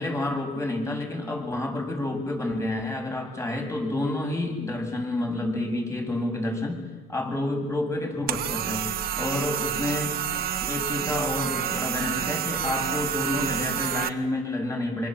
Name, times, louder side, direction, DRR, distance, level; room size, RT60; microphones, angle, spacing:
voice 1, 0.0-6.8 7.1-10.1 10.7-15.1, left 2 dB, 15° left, 3 dB, 7.6 m, -29 dB
sound 1, 8.3-14.1, right 10 dB, 65° right, 1.5 m, -29 dB
26.0 x 26.0 x 7.8 m, 1.3 s
cardioid pair, 110°, 17 cm